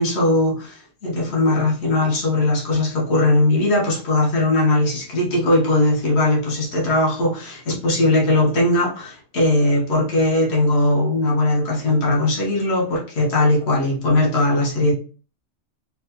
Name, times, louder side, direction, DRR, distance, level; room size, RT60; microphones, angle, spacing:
voice 1, 0.0-14.9, left 2 dB, 60° left, 1.3 m, -19 dB
3.9 x 2.3 x 2.9 m
omnidirectional pair, 1.3 m